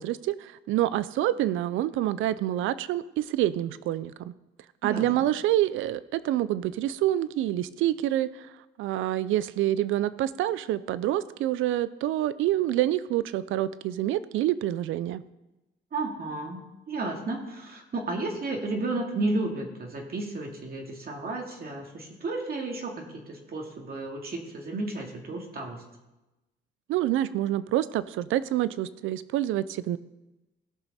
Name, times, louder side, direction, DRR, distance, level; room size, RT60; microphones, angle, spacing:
voice 1, 0.0-4.3 4.8-8.5 8.8-15.2 26.9-30.0, right 13 dB, 85° right, 16 dB, 0.5 m, -27 dB
voice 2, 15.9-25.8, right 2 dB, 50° right, 1 dB, 2.2 m, -33 dB
17.5 x 5.9 x 4.2 m, 1.0 s
cardioid pair, 90°, 20 cm